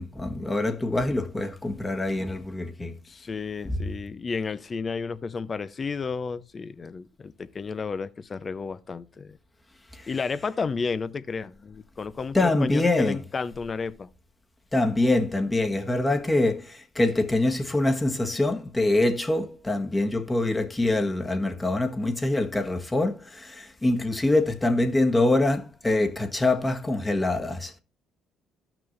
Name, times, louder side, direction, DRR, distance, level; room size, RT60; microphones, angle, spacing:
voice 1, 0.0-3.0 3.6-3.8 9.9-10.1 12.3-13.2 14.7-27.8, left 2 dB, 20° left, 1.5 m, -25 dB
voice 2, 3.1-9.4 10.1-14.1, left 5 dB, 40° left, 0.7 m, -32 dB
14.0 x 6.1 x 2.6 m
supercardioid pair, 65°, 0 cm